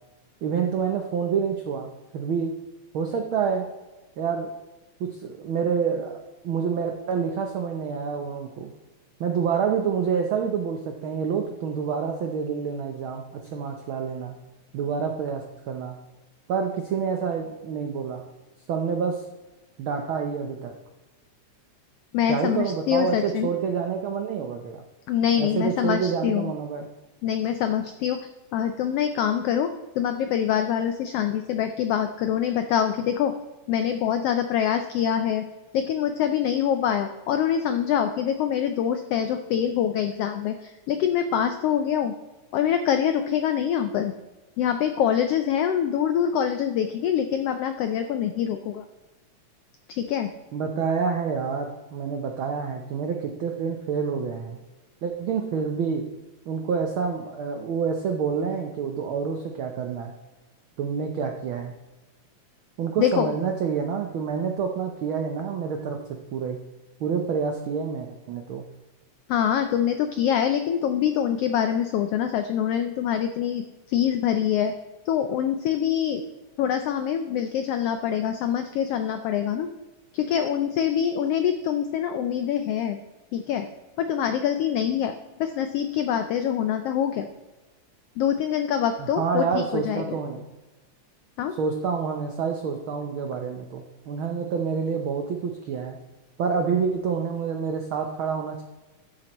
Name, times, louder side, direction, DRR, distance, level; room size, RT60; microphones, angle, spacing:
voice 1, 0.4-2.5 2.9-3.7 4.2-4.5 5.0-8.7 9.2-14.3 14.7-16.0 16.5-18.2 18.7-19.2 19.8-20.8 22.3-24.8 25.4-26.9 50.5-54.6 55.0-56.1 56.5-60.1 60.8-61.7 62.8-66.0 66.3-66.6 67.0-68.7 89.0-90.5 91.6-96.0 96.4-98.6, right 6 dB, 90° right, 4 dB, 1.1 m, -28 dB
voice 2, 22.1-23.5 25.1-26.5 27.2-28.2 28.5-33.3 33.7-35.4 35.7-42.1 42.5-44.1 44.6-48.8 50.0-50.3 63.0-63.3 69.3-73.6 73.9-74.7 75.1-76.2 76.6-79.7 80.1-83.0 83.3-83.7 84.0-87.3 88.2-90.2 91.4-91.5, left 9 dB, 85° left, 8 dB, 1.3 m, -25 dB
13.0 x 7.6 x 3.0 m, 1.1 s
omnidirectional pair, 3.4 m